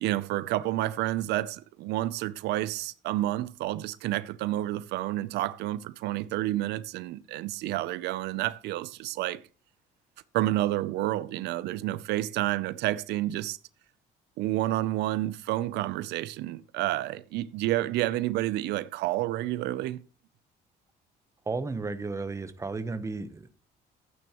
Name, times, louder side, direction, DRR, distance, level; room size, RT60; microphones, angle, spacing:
voice 1, 0.0-9.4 10.3-13.6 14.4-20.0, right 15 dB, 80° right, 0.6 m, -29 dB
voice 2, 21.5-23.5, right 3 dB, 15° right, 1.0 m, -33 dB
12.5 x 9.1 x 3.0 m
cardioid pair, 110°, 17 cm